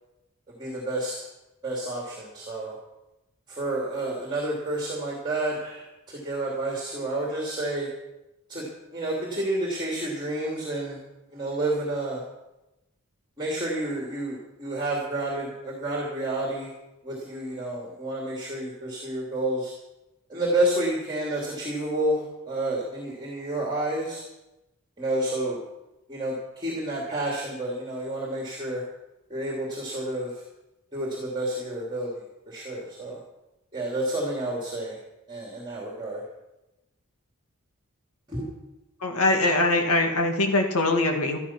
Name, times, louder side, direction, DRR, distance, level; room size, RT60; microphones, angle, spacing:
voice 1, 0.5-1.2 1.6-2.7 3.5-7.9 8.5-8.7 8.9-11.0 11.3-12.2 13.4-16.7 17.0-19.7 20.3-24.2 25.0-25.6 26.1-28.8 29.3-30.4 30.9-33.2 33.7-35.0 35.3-36.2 38.3-38.5, right 1 dB, 20° right, -2 dB, 2.5 m, -30 dB
voice 2, 39.0-41.4, left 2 dB, 85° left, 3 dB, 2.0 m, -22 dB
13.0 x 13.0 x 5.9 m, 0.97 s
head